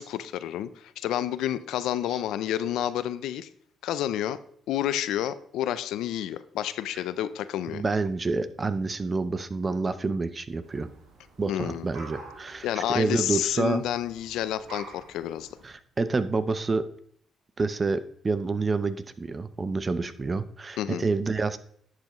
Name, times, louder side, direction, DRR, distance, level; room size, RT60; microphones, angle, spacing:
voice 1, 0.0-3.5 3.8-4.4 4.7-7.8 11.5-11.9 12.6-15.5 20.8-21.0, left 11 dB, 85° left, 14 dB, 0.5 m, -29 dB
voice 2, 7.7-10.9 11.4-13.8 15.6-16.8 17.6-21.6, right 3 dB, 30° right, 13 dB, 0.7 m, -28 dB
sound 1, 10.6-15.7, right 3 dB, 85° right, 2.3 m, -48 dB
11.0 x 7.6 x 3.1 m, 0.62 s
cardioid pair, 90°, 0 cm